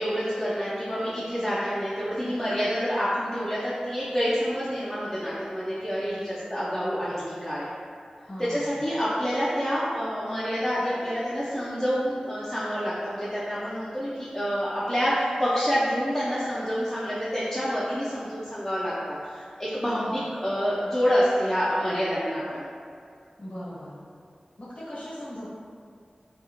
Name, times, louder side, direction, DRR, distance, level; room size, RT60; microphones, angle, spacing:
voice 1, 0.0-7.7 8.5-22.6, equal, 15° left, -10 dB, 0.4 m, -27 dB
voice 2, 6.6-7.2 8.2-8.8 19.8-20.2 23.4-24.0 24.6-25.5, equal, 65° left, -9 dB, 1.0 m, -40 dB
2.5 x 2.3 x 2.8 m, 2.2 s
wide cardioid pair, 70°, 2 cm